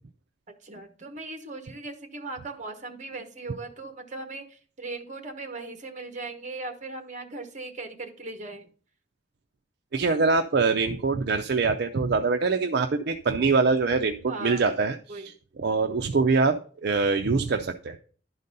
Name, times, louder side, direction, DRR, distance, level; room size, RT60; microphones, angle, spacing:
voice 1, 0.6-8.7 14.3-14.7 15.1-15.3, right 3 dB, 40° right, 6 dB, 1.2 m, -38 dB
voice 2, 9.9-15.3 15.6-18.0, right 4 dB, 60° right, 6 dB, 0.5 m, -24 dB
11.0 x 4.0 x 5.3 m, 0.43 s
head